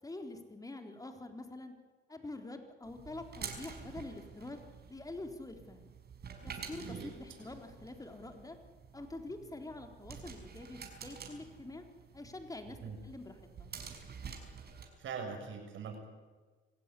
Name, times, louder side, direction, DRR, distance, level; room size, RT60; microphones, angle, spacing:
voice 1, 0.0-1.7 2.1-4.6 4.9-5.9 6.4-8.6 8.9-11.8 12.1-12.8 13.0-13.7, left 2 dB, 15° left, 5 dB, 3.9 m, -46 dB
sound 1, 2.8-14.9, right 6 dB, 55° right, 5.5 m, -49 dB
voice 2, 15.0-16.0, right 6 dB, 75° right, 3 dB, 7.3 m, -42 dB
26.0 x 16.5 x 9.9 m, 1.4 s
cardioid pair, 90°, 20 cm